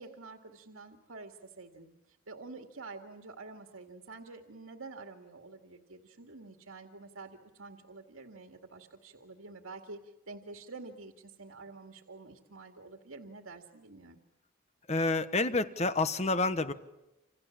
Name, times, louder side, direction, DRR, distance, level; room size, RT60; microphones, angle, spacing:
voice 1, 0.0-14.2, right 3 dB, 75° right, 4 dB, 2.2 m, -48 dB
voice 2, 14.9-16.7, left 3 dB, 30° left, 11 dB, 1.3 m, -28 dB
28.5 x 27.5 x 7.4 m, 0.93 s
head